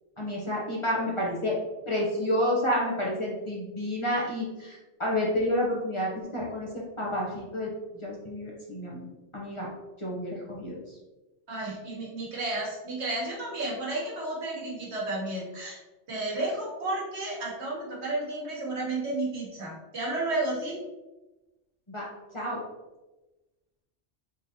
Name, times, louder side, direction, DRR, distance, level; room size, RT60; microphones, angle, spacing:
voice 1, 0.2-1.6 1.9-6.7 7.0-7.7 8.0-9.1 9.3-9.7 10.0-11.0 21.9-22.0 22.3-22.6, left 1 dB, 30° left, -5 dB, 0.8 m, -29 dB
voice 2, 11.5-15.8 16.1-20.9, right 2 dB, 75° right, -3 dB, 1.4 m, -32 dB
3.7 x 3.6 x 2.8 m, 1.1 s
omnidirectional pair, 1.1 m